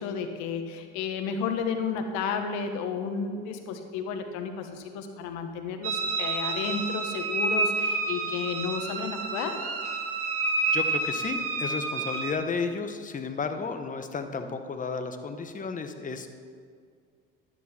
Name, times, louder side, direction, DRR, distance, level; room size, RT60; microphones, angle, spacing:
voice 1, 0.0-9.6, left 6 dB, 75° left, 6 dB, 1.4 m, -32 dB
sound 1, 5.8-12.3, right 3 dB, 50° right, 1.7 m, -29 dB
voice 2, 10.7-16.3, left 4 dB, 25° left, 7 dB, 1.2 m, -33 dB
11.5 x 9.9 x 4.5 m, 2.1 s
supercardioid pair, 85°, 29 cm